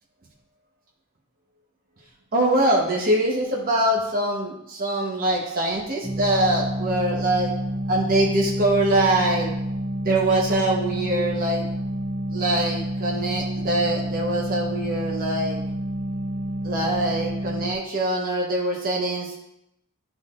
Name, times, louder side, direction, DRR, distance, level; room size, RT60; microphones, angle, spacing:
voice 1, 2.3-7.5 7.9-9.5 10.0-11.7 12.3-15.6 16.6-19.3, right 1 dB, 45° right, -2 dB, 1.1 m, -23 dB
sound 1, 6.0-17.7, equal, 25° right, 0.8 m, -29 dB
11.0 x 4.0 x 2.5 m, 0.79 s
head